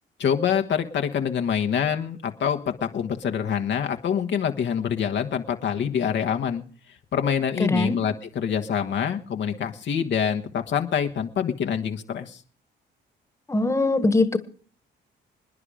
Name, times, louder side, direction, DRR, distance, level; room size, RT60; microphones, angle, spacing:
voice 1, 0.2-6.6 7.1-12.4, left 8 dB, 65° left, 5 dB, 1.5 m, -25 dB
voice 2, 7.6-8.0 13.5-14.4, left 2 dB, 15° left, 11 dB, 1.6 m, -21 dB
26.5 x 10.0 x 5.0 m, 0.43 s
cardioid pair, 90°, 20 cm